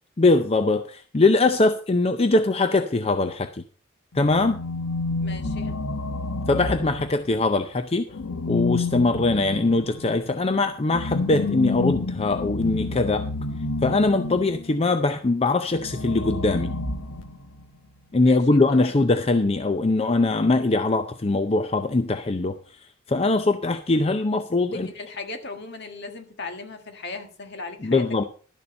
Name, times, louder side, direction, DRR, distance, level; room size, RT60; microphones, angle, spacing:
voice 1, 0.2-3.6 4.1-4.6 6.5-8.1 8.5-13.3 13.8-16.7 18.1-22.6 23.1-24.9 27.8-28.2, left 2 dB, 30° left, 9 dB, 0.5 m, -22 dB
sound 1, 4.1-7.5 8.1-14.7 15.7-17.7, left 3 dB, 80° left, 1.1 m, -29 dB
voice 2, 5.2-5.7 18.2-19.0 24.7-28.2, left 3 dB, 55° left, 6 dB, 1.7 m, -38 dB
12.0 x 6.9 x 5.3 m, 0.41 s
head